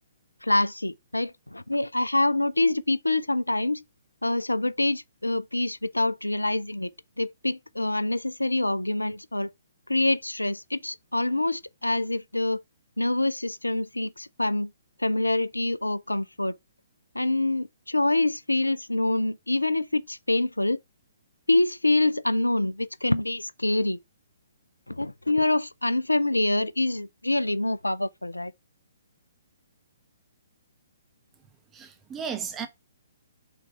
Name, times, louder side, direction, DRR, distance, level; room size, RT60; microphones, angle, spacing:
voice 1, 0.4-3.8 4.2-6.9 7.2-9.5 9.9-12.6 13.0-14.7 15.0-16.6 17.1-20.8 21.5-24.0 24.9-28.5, left 2 dB, 80° left, 0.4 m, -26 dB
voice 2, 31.7-32.7, right 7 dB, 15° right, 0.9 m, -34 dB
5.8 x 3.9 x 4.4 m
figure-of-eight pair, 125°, 0 cm